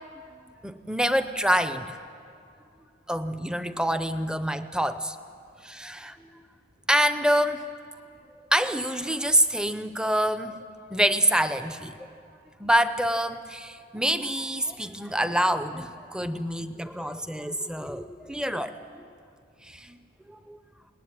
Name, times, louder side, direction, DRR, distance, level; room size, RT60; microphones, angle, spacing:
voice 1, 0.6-2.0 3.1-5.2 5.6-6.3 6.9-7.7 8.5-11.9 12.6-19.0 19.6-20.0 20.3-20.6, equal, 5° right, 11 dB, 0.7 m, -26 dB
21.5 x 19.0 x 9.7 m, 2.5 s
head